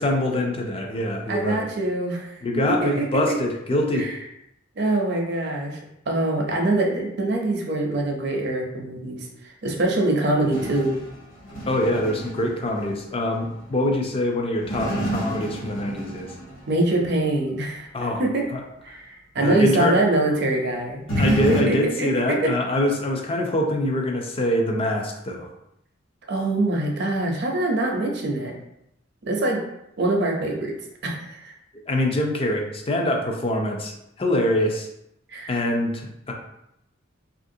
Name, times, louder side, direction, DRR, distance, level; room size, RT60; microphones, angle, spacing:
voice 1, 0.0-1.7 2.4-4.1 11.7-16.3 17.9-18.2 18.5-18.6 19.4-20.0 21.2-25.5 31.9-33.9 34.2-34.9 35.5-36.3, left 1 dB, 30° left, 1 dB, 0.4 m, -24 dB
voice 2, 1.3-2.4 2.8-3.3 3.9-4.1 4.8-5.8 6.1-11.0 16.7-17.9 18.2-18.5 18.8-22.5 26.3-28.5 29.3-29.6 30.0-30.7 31.0-31.5 35.3-35.5, right 2 dB, 55° right, 1 dB, 0.6 m, -24 dB
sound 1, 10.4-13.6 14.6-16.8 21.1-21.6, right 1 dB, 85° left, 1.1 m, -29 dB
3.2 x 2.5 x 2.6 m, 0.81 s
head